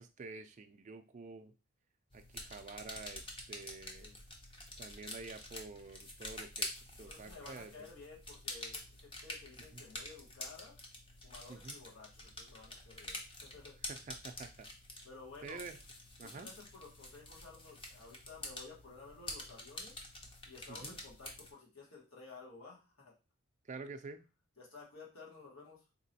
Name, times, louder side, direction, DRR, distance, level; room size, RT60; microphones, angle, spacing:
voice 1, 0.0-1.5 2.1-4.1 4.8-7.7 9.6-9.8 11.5-11.8 13.9-14.7 15.4-15.8 16.2-16.5 20.7-21.0 23.6-24.2, right 4 dB, 35° right, 8 dB, 0.3 m, -49 dB
sound 1, 2.1-21.5, left 2 dB, 25° left, 0.6 m, -47 dB
voice 2, 7.0-10.8 11.2-13.8 15.0-15.6 16.2-20.0 20.4-23.1 24.6-25.9, left 4 dB, 65° left, -3 dB, 1.4 m, -54 dB
4.1 x 2.9 x 2.7 m, 0.31 s
head